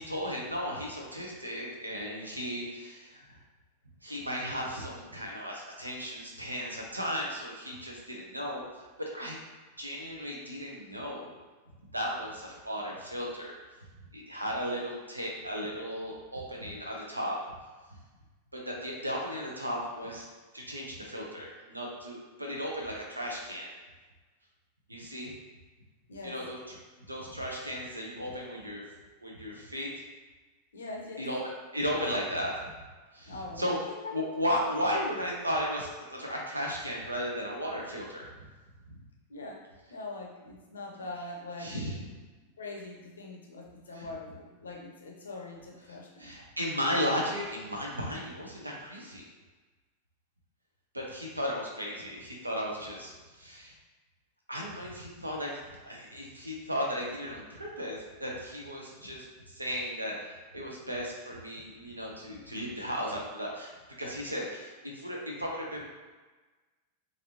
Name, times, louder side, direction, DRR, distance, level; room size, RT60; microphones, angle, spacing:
voice 1, 0.0-3.4 4.0-8.6 9.0-9.4 9.8-11.3 11.9-13.6 14.1-17.4 18.5-20.3 20.5-23.7 24.9-25.3 26.2-26.7 27.1-28.8 29.2-29.9 31.2-31.4 31.7-32.6 33.1-33.8 34.1-38.3 41.6-42.0 43.9-44.1 46.2-49.2 50.9-53.7 54.5-55.6 55.9-63.7 64.0-65.8, equal, 85° right, -2 dB, 0.6 m, -35 dB
voice 2, 26.1-26.4 30.7-31.3 33.2-34.1 39.3-39.6 39.9-41.8 42.6-46.3, left 2 dB, 70° left, 0 dB, 0.6 m, -42 dB
3.3 x 2.6 x 2.7 m, 1.3 s
figure-of-eight pair, 90°, 0 cm